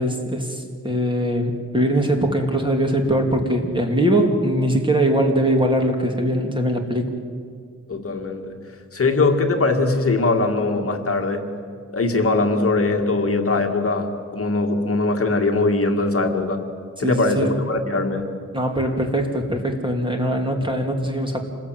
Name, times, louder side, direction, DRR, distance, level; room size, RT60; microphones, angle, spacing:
voice 1, 0.0-7.0 17.0-17.6 18.5-21.4, right 1 dB, 15° right, 3 dB, 2.7 m, -21 dB
voice 2, 7.9-8.6 8.9-11.5 11.9-16.6 17.0-18.3, left 3 dB, 45° left, 3 dB, 2.1 m, -21 dB
27.5 x 20.5 x 9.1 m, 2.2 s
wide cardioid pair, 140°, 31 cm